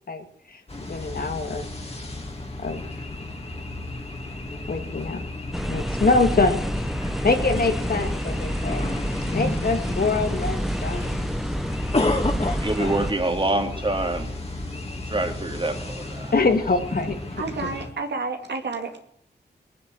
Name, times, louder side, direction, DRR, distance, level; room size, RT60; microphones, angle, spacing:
voice 1, 0.1-1.7 2.6-2.8 4.7-5.2 5.7-6.7 7.2-9.0 9.3-11.2 12.8-13.1 16.3-17.2, left 3 dB, 60° left, 2.1 m, -24 dB
sound 1, 0.7-17.9, left 2 dB, 35° left, 2.6 m, -32 dB
sound 2, 5.5-13.1, equal, ahead, 0.7 m, -29 dB
voice 2, 12.6-14.3 15.1-16.3, right 2 dB, 30° right, 2.6 m, -26 dB
voice 3, 17.4-19.0, right 4 dB, 75° right, 2.4 m, -30 dB
19.5 x 9.6 x 7.7 m
wide cardioid pair, 70°, 18 cm